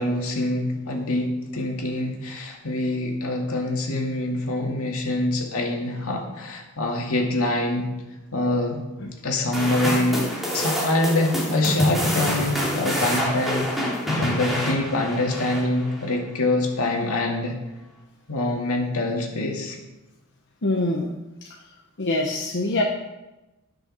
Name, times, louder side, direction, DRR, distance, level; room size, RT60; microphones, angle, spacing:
voice 1, 0.0-7.9 8.3-8.8 9.2-10.2 10.5-13.7 14.2-17.6 18.3-19.8, left 2 dB, 75° left, 1 dB, 2.2 m, -25 dB
sound 1, 9.5-16.1, equal, ahead, 2.5 m, -27 dB
voice 2, 20.6-21.1 22.0-22.8, left 2 dB, 55° left, 0 dB, 1.0 m, -24 dB
11.5 x 6.3 x 6.3 m, 1.0 s
head